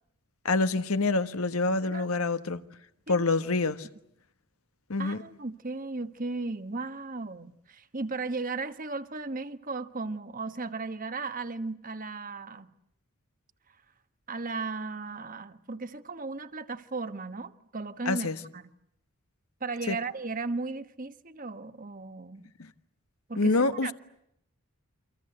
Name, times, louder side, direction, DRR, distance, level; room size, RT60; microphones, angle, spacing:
voice 1, 0.4-2.6 3.1-3.9 4.9-5.2 18.0-18.4 19.9-20.0 22.6-22.7 23.4-23.9, left 3 dB, 75° left, 1.4 m, -26 dB
voice 2, 1.9-2.3 3.1-3.3 5.0-12.7 14.3-18.6 19.6-22.5 23.3-23.9, right 3 dB, 40° right, 1.3 m, -36 dB
28.5 x 26.0 x 7.9 m
head